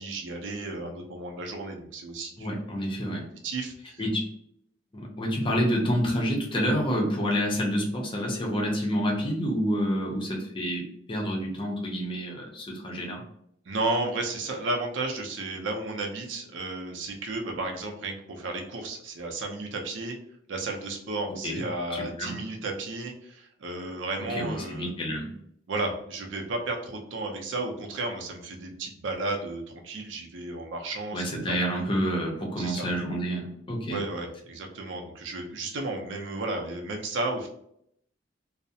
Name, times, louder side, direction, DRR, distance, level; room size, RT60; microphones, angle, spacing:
voice 1, 0.0-2.5 3.4-4.0 13.7-20.2 20.5-24.9 25.7-31.9 32.6-32.9 33.9-37.5, right 2 dB, 85° right, 2 dB, 0.5 m, -33 dB
voice 2, 2.4-3.3 4.0-4.3 4.9-13.2 21.4-21.6 21.9-22.4 24.3-25.3 31.1-34.0, equal, 25° left, 0 dB, 0.5 m, -28 dB
2.4 x 2.0 x 2.6 m, 0.71 s
head